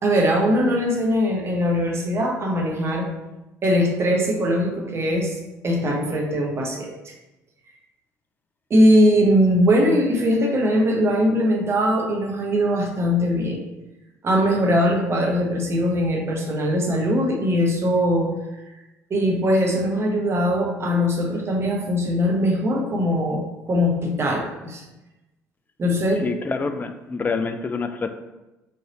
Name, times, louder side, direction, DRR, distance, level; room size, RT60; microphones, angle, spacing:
voice 1, 0.0-3.1 3.6-5.4 5.6-7.1 8.7-13.6 14.2-18.3 19.1-24.8 25.8-26.2, equal, 30° right, 0 dB, 1.0 m, -21 dB
voice 2, 26.2-28.1, left 4 dB, 20° left, 8 dB, 0.4 m, -26 dB
4.6 x 4.0 x 2.9 m, 1.0 s
figure-of-eight pair, 55°, 8 cm